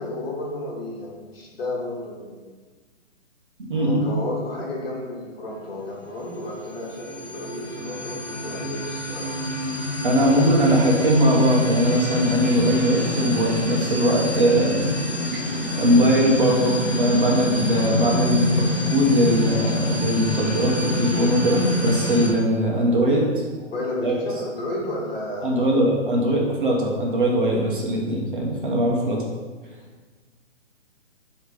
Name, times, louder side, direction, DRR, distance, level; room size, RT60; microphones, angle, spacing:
voice 1, 0.0-2.5 3.7-9.3 10.1-11.1 12.2-12.4 23.6-26.3, left 2 dB, 50° left, -4 dB, 1.8 m, -32 dB
voice 2, 3.7-4.1 10.0-15.0 15.3-23.4 24.0-24.1 25.4-29.2, equal, 40° right, -2 dB, 1.1 m, -21 dB
sound 1, 6.6-22.3, left 1 dB, 20° left, 0.4 m, -26 dB
6.4 x 3.2 x 5.2 m, 1.4 s
hypercardioid pair, 170°, 38 cm